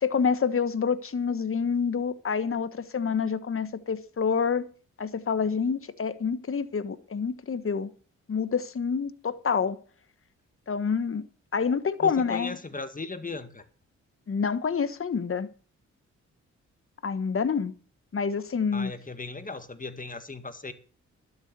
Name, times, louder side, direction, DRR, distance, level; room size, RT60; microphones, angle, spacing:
voice 1, 0.0-4.7 5.0-7.9 8.3-9.8 10.7-11.2 11.5-12.6 14.3-15.5 17.0-17.7 18.1-18.9, left 6 dB, 45° left, 1.3 m, -27 dB
voice 2, 12.0-13.6 18.7-20.7, left 3 dB, 25° left, 2.0 m, -37 dB
12.5 x 7.3 x 8.2 m
cardioid pair, 55°, 30 cm